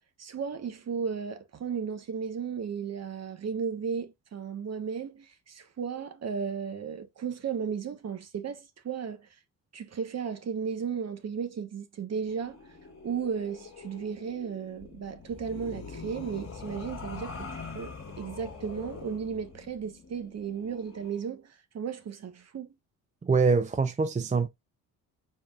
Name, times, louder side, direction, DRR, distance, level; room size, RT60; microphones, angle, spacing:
voice 1, 0.2-9.3 9.7-12.6 13.0-22.7, right 6 dB, 45° right, 1.2 m, -35 dB
sound 1, 12.3-21.2, left 4 dB, 35° left, 1.9 m, -44 dB
voice 2, 23.2-24.5, right 4 dB, 20° right, 0.5 m, -24 dB
5.2 x 4.3 x 2.3 m
supercardioid pair, 75°, 36 cm